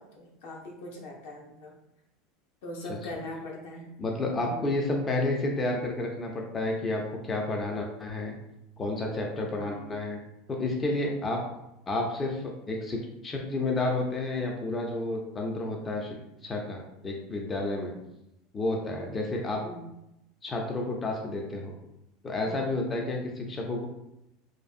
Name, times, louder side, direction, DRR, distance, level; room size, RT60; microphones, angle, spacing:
voice 1, 0.0-1.8 2.6-3.9 4.4-4.7 9.5-10.1 19.6-19.9 22.5-22.7, left 1 dB, 75° left, -1 dB, 0.7 m, -41 dB
voice 2, 4.0-8.4 8.8-10.2 10.5-11.4 11.9-16.2 16.4-17.9 18.5-19.6 20.4-21.7 22.2-23.9, left 2 dB, 20° left, 0 dB, 0.3 m, -30 dB
2.5 x 2.5 x 2.4 m, 0.87 s
supercardioid pair, 155°, 0 cm